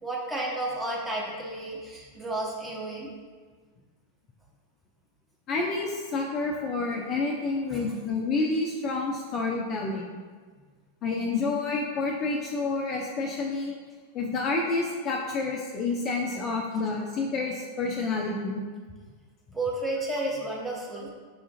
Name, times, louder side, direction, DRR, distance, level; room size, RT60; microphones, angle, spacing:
voice 1, 0.0-3.1 7.7-7.9 19.5-21.1, right 2 dB, 5° right, -5 dB, 0.9 m, -32 dB
voice 2, 5.5-10.1 11.0-13.7 14.1-18.6, left 3 dB, 30° left, 0 dB, 0.4 m, -29 dB
6.3 x 2.4 x 2.7 m, 1.5 s
figure-of-eight pair, 90°, 0 cm